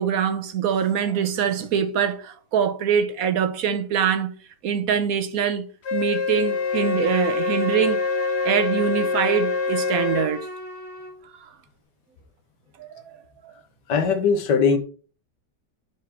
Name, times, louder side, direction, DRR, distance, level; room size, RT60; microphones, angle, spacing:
voice 1, 0.0-4.3 4.6-8.0 8.4-10.5 11.4-11.5 12.8-13.2 13.4-13.5, right 7 dB, 60° right, 1.1 m, -24 dB
Wind instrument woodwind instrument, 5.8-10.3, left 5 dB, 55° left, 0.7 m, -25 dB
Bowed string instrument, 6.4-11.2, equal, 40° right, 2.5 m, -33 dB
voice 2, 13.9-14.8, left 5 dB, 80° left, 1.8 m, -20 dB
7.0 x 5.1 x 4.4 m
omnidirectional pair, 1.9 m